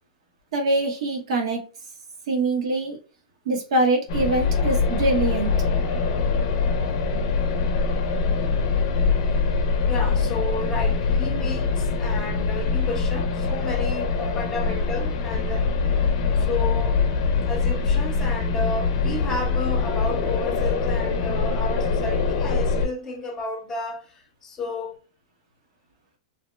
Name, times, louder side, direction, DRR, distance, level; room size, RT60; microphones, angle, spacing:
voice 1, 0.5-1.6 2.3-3.0 3.4-5.5 17.4-17.5, right 2 dB, 70° right, 1.0 m, -23 dB
sound 1, 4.1-22.9, left 4 dB, 55° left, 0.5 m, -23 dB
voice 2, 9.6-15.7 16.3-17.0 17.4-25.0, left 2 dB, 15° left, 0.8 m, -32 dB
2.8 x 2.0 x 3.1 m
supercardioid pair, 145°, 3 cm